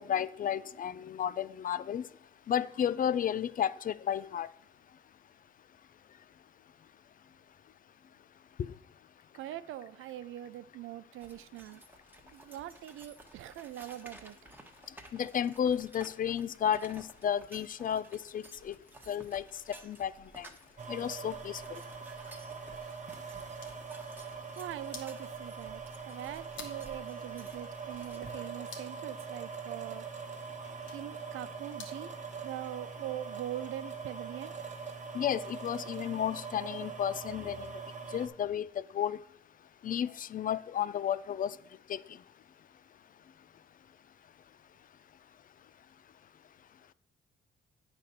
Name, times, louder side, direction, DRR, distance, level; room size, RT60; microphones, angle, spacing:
voice 1, 0.0-2.0 2.5-4.5 8.6-8.7 15.1-18.1 18.3-18.8 19.1-19.4 19.8-20.5 20.9-21.8 35.1-37.7 38.1-39.2 39.8-41.6 41.9-42.0, left 9 dB, 45° left, 0.4 m, -32 dB
voice 2, 9.3-11.8 12.3-14.4 22.8-22.9 24.6-30.1 30.9-32.1 32.4-34.5, right 12 dB, 85° right, 0.5 m, -42 dB
sound 1, 11.2-28.3, right 2 dB, 10° right, 1.2 m, -55 dB
sound 2, 20.8-38.3, right 5 dB, 35° right, 1.1 m, -43 dB
sound 3, 23.3-32.1, left 5 dB, 70° left, 1.7 m, -54 dB
9.2 x 4.2 x 6.6 m
cardioid pair, 90°, 20 cm